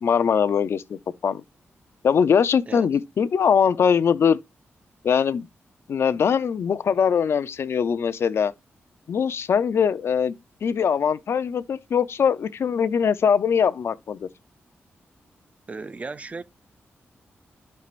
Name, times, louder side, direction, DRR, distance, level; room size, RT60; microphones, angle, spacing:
voice 1, 0.0-1.4 2.0-4.4 5.0-5.5 5.9-8.5 9.1-14.3, left 7 dB, 70° left, 0.5 m, -22 dB
voice 2, 15.7-16.4, right 3 dB, 30° right, 0.5 m, -35 dB
11.5 x 4.5 x 2.5 m
wide cardioid pair, 105°, 4 cm